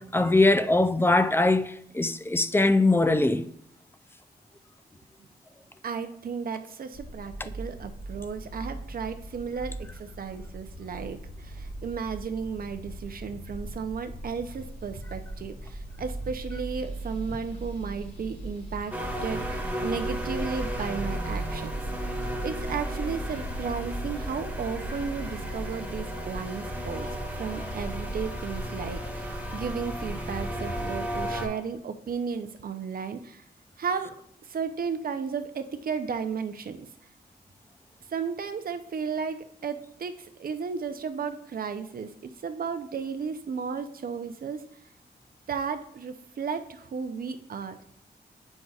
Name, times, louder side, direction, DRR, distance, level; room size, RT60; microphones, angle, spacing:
voice 1, 0.0-3.5 7.4-7.5, left 2 dB, 15° left, 0.3 m, -22 dB
voice 2, 5.8-18.9 19.2-21.7 22.0-27.1 27.3-33.4 33.8-34.1 34.4-36.8 38.1-42.1 42.4-44.6 45.5-47.8, right 6 dB, 60° right, 0.5 m, -34 dB
sound 1, 6.9-25.5, right 1 dB, 35° left, 2.0 m, -39 dB
sound 2, 18.9-31.5, equal, 10° right, 1.3 m, -34 dB
7.8 x 5.3 x 2.3 m
wide cardioid pair, 90°, 17 cm